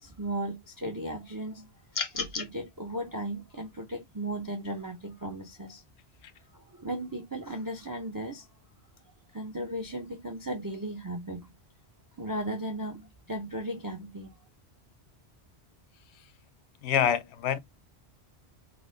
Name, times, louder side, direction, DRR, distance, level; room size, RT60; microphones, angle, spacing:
voice 1, 0.0-1.7 2.1-5.8 6.5-8.5 9.3-11.5 12.2-14.3, right 1 dB, 30° right, 0.4 m, -36 dB
sound 1, 1.9-2.5, left 5 dB, 40° left, 0.5 m, -32 dB
voice 2, 16.8-17.6, left 9 dB, 75° left, 0.8 m, -26 dB
3.9 x 2.0 x 3.2 m
omnidirectional pair, 1.1 m